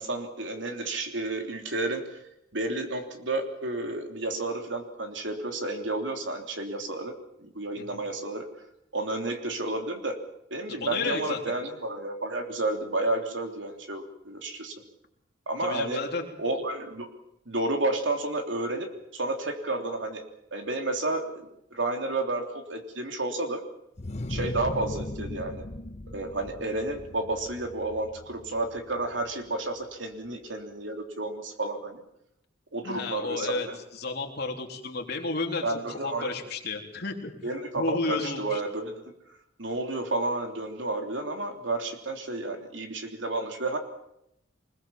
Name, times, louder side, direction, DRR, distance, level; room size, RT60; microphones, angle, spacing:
voice 1, 0.0-2.2 2.5-7.1 7.4-8.5 8.9-10.2 10.5-14.8 15.5-16.0 16.4-17.1 17.5-20.2 20.5-23.6 24.3-25.6 26.1-32.0 32.7-33.8 35.6-36.3 37.4-39.0 39.6-43.8, right 2 dB, 70° right, 4 dB, 3.4 m, -31 dB
voice 2, 10.7-11.4 15.6-16.3 32.8-33.7 33.9-37.3 37.7-38.6, left 3 dB, 55° left, 2 dB, 3.7 m, -32 dB
sound 1, 24.0-29.5, left 1 dB, 35° left, 0.9 m, -38 dB
25.0 x 21.0 x 7.3 m, 0.81 s
head